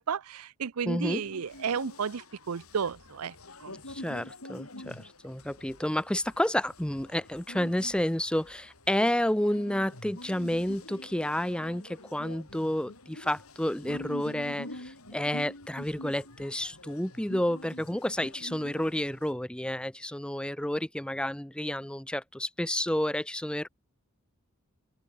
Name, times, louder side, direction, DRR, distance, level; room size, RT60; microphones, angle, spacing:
voice 1, 0.0-3.3 3.6-3.7, right 6 dB, 90° right, 0.6 m, -33 dB
voice 2, 0.9-1.2 3.9-23.7, left 1 dB, 5° left, 0.6 m, -30 dB
sound 1, 1.2-19.3, left 1 dB, 80° left, 7.1 m, -46 dB
open air
head